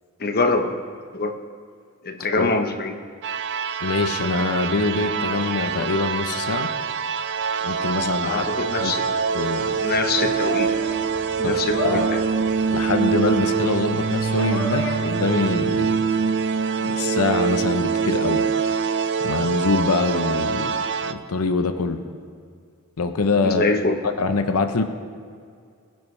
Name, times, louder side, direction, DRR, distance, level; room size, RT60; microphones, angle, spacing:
voice 1, 0.2-0.8 1.1-1.4 2.0-2.9 8.2-9.1 9.8-10.7 11.4-12.2 23.4-24.0, left 3 dB, 45° left, 6 dB, 1.0 m, -24 dB
sound 1, 3.2-21.1, right 6 dB, 50° right, 0.5 m, -24 dB
voice 2, 3.8-6.7 7.6-8.5 8.7-9.8 11.4-12.1 12.7-16.0 16.8-18.4 19.2-22.0 23.0-23.6 24.0-24.8, left 3 dB, 85° left, 8 dB, 0.8 m, -24 dB
sound 2, 9.1-15.5, left 1 dB, 65° left, 2.0 m, -34 dB
21.5 x 10.0 x 3.3 m, 2.2 s
head